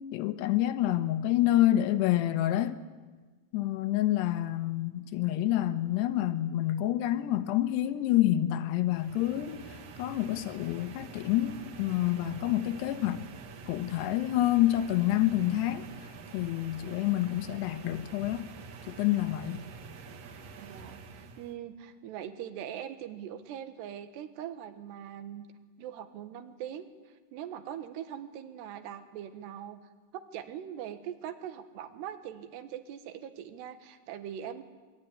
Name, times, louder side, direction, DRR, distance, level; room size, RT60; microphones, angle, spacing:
voice 1, 0.0-2.8 3.5-13.3 13.7-15.9 16.3-18.5 18.9-19.6, left 13 dB, 85° left, 3.3 m, -28 dB
sound 1, 8.9-21.6, right 5 dB, 55° right, 2.1 m, -47 dB
voice 2, 20.6-25.5 25.8-26.9 27.3-29.8 30.1-34.6, right 10 dB, 80° right, 3.6 m, -41 dB
26.0 x 23.0 x 9.9 m
omnidirectional pair, 4.8 m